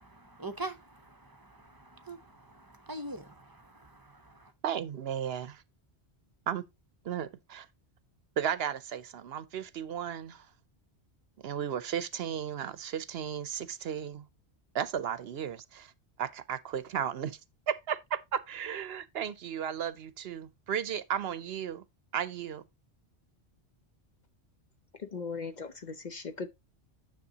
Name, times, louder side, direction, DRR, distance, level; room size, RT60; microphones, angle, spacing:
voice 1, 0.0-0.8 1.4-1.5 1.9-2.2 2.5-3.6, right 2 dB, 25° right, 0.7 m, -41 dB
voice 2, 4.6-5.6 6.5-6.6 7.0-7.7 8.4-10.4 11.4-14.2 14.7-15.9 16.2-17.4 17.7-21.8 22.1-22.6, right 9 dB, 65° right, 0.8 m, -34 dB
voice 3, 25.0-26.5, left 4 dB, 45° left, 0.8 m, -38 dB
9.5 x 6.5 x 2.8 m
omnidirectional pair, 1.1 m